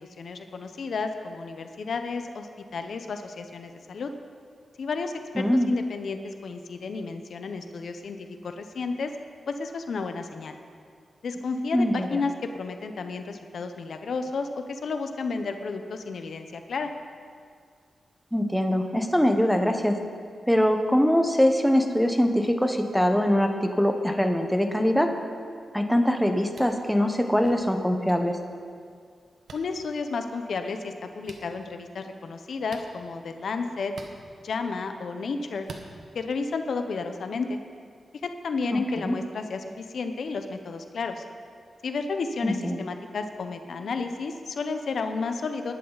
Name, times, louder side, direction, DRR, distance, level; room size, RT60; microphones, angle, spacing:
voice 1, 0.2-4.1 4.8-9.1 9.5-10.6 11.2-16.9 29.5-33.9 34.4-35.7 36.1-37.6 38.2-41.2 41.8-45.7, left 4 dB, 70° left, 7 dB, 0.9 m, -32 dB
voice 2, 5.4-5.7 11.7-12.2 18.3-20.0 20.5-25.1 25.7-28.4 38.7-38.8 39.0-39.2 42.4-42.8, equal, ahead, 5 dB, 1.1 m, -23 dB
sound 1, 26.5-26.8 28.0-28.1 29.5-29.6 31.2-31.4 32.7-32.9 33.9-34.1 35.6-35.9, right 4 dB, 75° right, 1.3 m, -43 dB
19.0 x 11.5 x 4.1 m, 2.1 s
wide cardioid pair, 100°, 0 cm